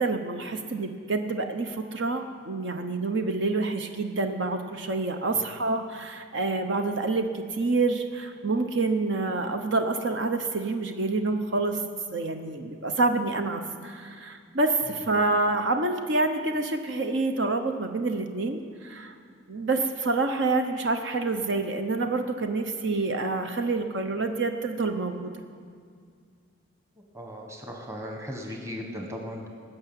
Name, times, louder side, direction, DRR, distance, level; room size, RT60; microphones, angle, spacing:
voice 1, 0.0-11.8 12.1-19.1 19.5-25.3, right 3 dB, 60° right, 6 dB, 0.8 m, -27 dB
voice 2, 27.1-29.5, equal, 15° right, 1 dB, 1.4 m, -37 dB
19.0 x 6.8 x 9.1 m, 2.2 s
head